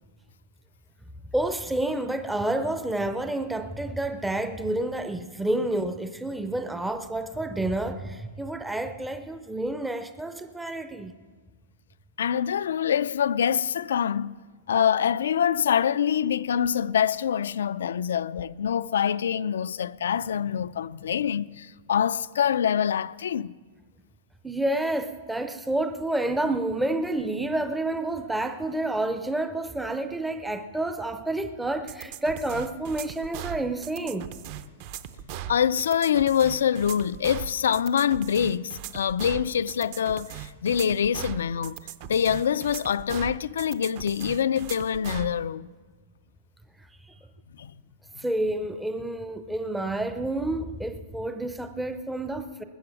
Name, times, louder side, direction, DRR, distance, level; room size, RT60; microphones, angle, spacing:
voice 1, 1.3-11.1 24.4-34.3 48.2-52.6, right 1 dB, 5° right, 0.5 m, -29 dB
voice 2, 12.2-14.4 14.7-23.5 35.5-41.8 42.0-45.7 47.6-47.7, left 8 dB, 90° left, 0.4 m, -25 dB
sound 1, 31.9-45.3, right 10 dB, 45° right, 0.6 m, -39 dB
20.0 x 7.7 x 7.1 m
hypercardioid pair, 155°, 0 cm